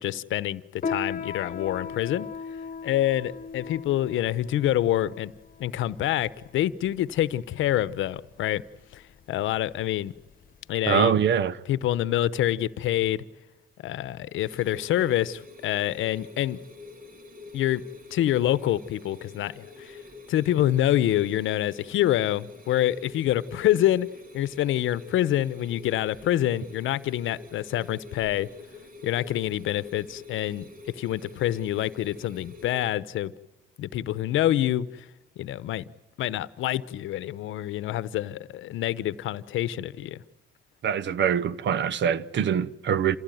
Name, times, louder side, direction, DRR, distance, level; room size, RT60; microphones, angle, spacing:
voice 1, 0.0-2.3 2.8-5.3 5.6-8.6 8.9-9.0 9.3-10.1 10.7-11.2 11.7-13.2 13.8-16.6 17.5-17.8 18.1-20.0 20.3-24.1 24.3-28.5 29.0-33.3 33.8-35.0 35.4-35.8 36.2-40.2, left 13 dB, 80° left, 0.9 m, -26 dB
Piano, 0.8-10.7, left 5 dB, 45° left, 1.1 m, -38 dB
voice 2, 10.9-11.5 40.8-43.2, right 8 dB, 65° right, 1.0 m, -24 dB
sound 1, 14.4-32.9, left 3 dB, 45° right, 3.1 m, -46 dB
27.5 x 16.0 x 9.2 m
cardioid pair, 90°, 20 cm